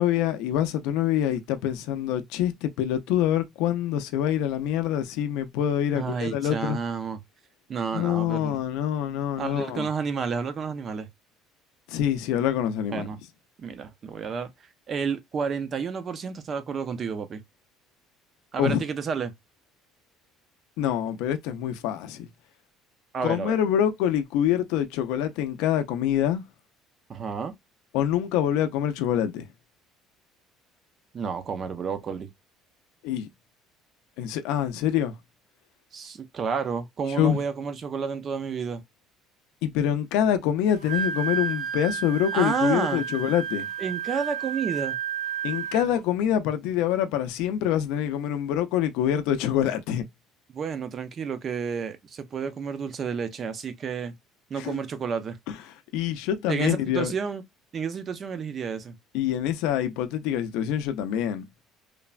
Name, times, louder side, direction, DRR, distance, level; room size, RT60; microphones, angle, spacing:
voice 1, 0.0-6.8 7.9-9.9 11.9-13.1 18.6-18.8 20.8-22.3 23.2-26.4 27.9-29.5 33.0-33.3 34.2-35.1 37.2-37.4 39.6-43.7 45.4-50.0 54.6-54.8 55.9-57.1 59.1-61.5, left 10 dB, 80° left, 0.4 m, -25 dB
voice 2, 5.9-7.2 7.7-8.6 9.4-11.1 12.9-13.2 13.6-14.5 14.9-17.4 18.5-19.3 23.1-23.6 27.1-27.5 31.1-32.3 35.9-38.8 42.3-43.0 43.8-45.0 50.5-54.2 54.5-55.4 56.5-57.4 57.7-59.0, right 6 dB, 30° right, 0.3 m, -30 dB
Wind instrument woodwind instrument, 40.7-46.0, right 7 dB, 70° right, 1.3 m, -31 dB
3.1 x 2.1 x 2.3 m
cardioid pair, 170°, 0 cm